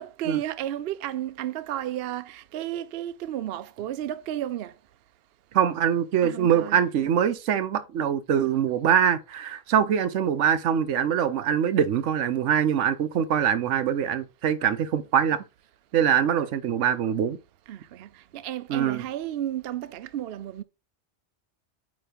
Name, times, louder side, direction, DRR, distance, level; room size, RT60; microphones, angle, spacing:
voice 1, 0.0-4.7 6.2-6.8 17.7-20.6, right 12 dB, 65° right, 0.7 m, -33 dB
voice 2, 5.5-15.4 15.9-17.4 18.7-19.0, right 8 dB, 80° right, 1.0 m, -23 dB
8.7 x 3.2 x 5.0 m
omnidirectional pair, 1.2 m